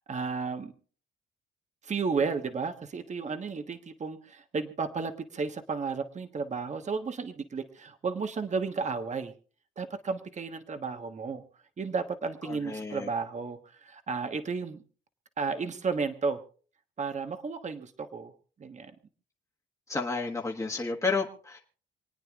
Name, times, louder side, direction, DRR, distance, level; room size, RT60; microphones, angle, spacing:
voice 1, 0.1-0.7 1.8-9.3 9.8-11.4 11.8-14.8 15.4-16.4 17.0-18.3 18.6-18.9, right 4 dB, 35° right, 7 dB, 1.3 m, -33 dB
voice 2, 12.4-13.1 19.9-21.6, left 4 dB, 15° left, -1 dB, 1.5 m, -31 dB
27.5 x 9.2 x 2.4 m, 0.41 s
cardioid pair, 90°, 20 cm